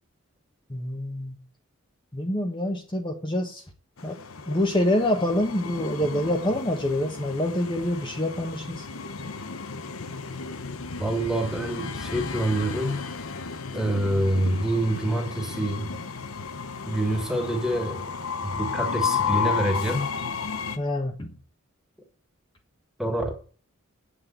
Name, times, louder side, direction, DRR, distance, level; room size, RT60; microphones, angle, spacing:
voice 1, 0.7-1.4 2.1-3.6 4.0-4.2 4.5-8.8 20.8-21.4, left 1 dB, 25° left, 1.3 m, -26 dB
Train, 4.0-20.8, left 5 dB, 85° left, 1.0 m, -33 dB
voice 2, 11.0-13.0 13.7-15.9 16.9-18.1 18.4-20.1 23.0-23.3, right 1 dB, 5° right, 2.0 m, -26 dB
9.2 x 6.5 x 7.9 m
head